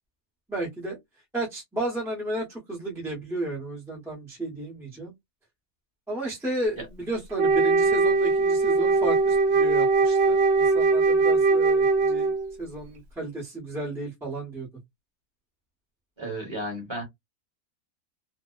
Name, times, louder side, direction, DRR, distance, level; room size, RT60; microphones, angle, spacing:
voice 1, 0.5-1.0 1.3-5.1 6.1-12.3 12.6-14.7, right 1 dB, ahead, 0.7 m, -33 dB
Wind instrument woodwind instrument, 7.3-12.5, right 4 dB, 65° right, 0.7 m, -21 dB
voice 2, 16.2-17.0, right 1 dB, 20° right, 1.0 m, -33 dB
2.7 x 2.0 x 2.3 m
omnidirectional pair, 1.5 m